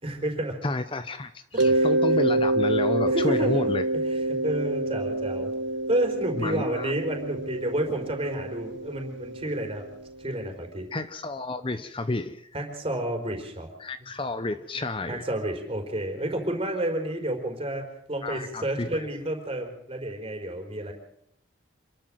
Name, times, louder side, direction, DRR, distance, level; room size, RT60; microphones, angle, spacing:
voice 1, 0.0-0.6 1.7-1.9 3.1-3.7 4.1-5.5 5.9-9.8 10.2-10.9 12.5-13.7 15.1-20.9, right 1 dB, 30° right, 3 dB, 4.7 m, -30 dB
voice 2, 0.6-3.8 6.4-6.9 10.9-12.5 13.8-15.3 18.2-19.1, left 2 dB, 25° left, 11 dB, 0.7 m, -31 dB
Mallet percussion, 1.6-10.2, right 2 dB, 65° right, 0.9 m, -27 dB
27.0 x 13.0 x 7.7 m, 0.72 s
head